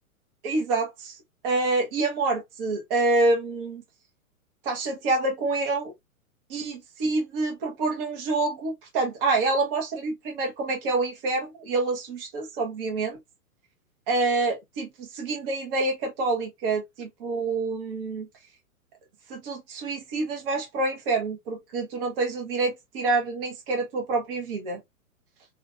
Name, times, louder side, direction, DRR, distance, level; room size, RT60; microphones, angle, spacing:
voice 1, 0.4-1.1 1.4-3.8 4.6-5.9 6.5-13.2 14.1-18.3 19.3-24.8, right 3 dB, 40° right, 1.4 m, -27 dB
3.3 x 2.6 x 2.3 m
figure-of-eight pair, 115°, 43 cm